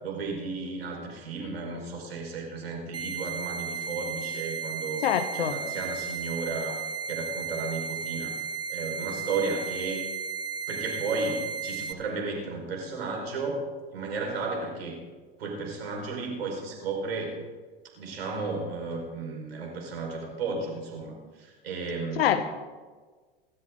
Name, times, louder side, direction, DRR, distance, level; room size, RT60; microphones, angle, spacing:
voice 1, 0.0-5.1 5.3-6.8 7.1-8.4 8.7-10.0 10.7-13.6 13.9-15.0 15.4-17.4 17.9-22.5, right 3 dB, 90° right, 0 dB, 5.0 m, -33 dB
sound 1, 2.9-11.9, right 5 dB, 15° right, 1.4 m, -34 dB
voice 2, 5.0-5.6 22.2-22.5, left 9 dB, 80° left, 11 dB, 1.1 m, -25 dB
27.0 x 14.0 x 3.8 m, 1.4 s
hypercardioid pair, 90°, 29 cm